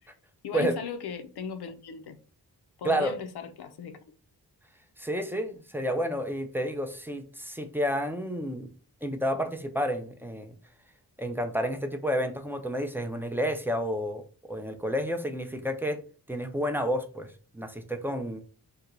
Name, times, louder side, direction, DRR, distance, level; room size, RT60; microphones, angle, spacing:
voice 1, 0.4-2.2 2.8-4.0, left 6 dB, 75° left, 0.5 m, -37 dB
voice 2, 2.8-3.2 5.0-8.7 9.0-10.5 11.2-16.0 16.3-18.4, equal, 5° right, 0.4 m, -30 dB
2.9 x 2.2 x 3.8 m
wide cardioid pair, 100°, 40 cm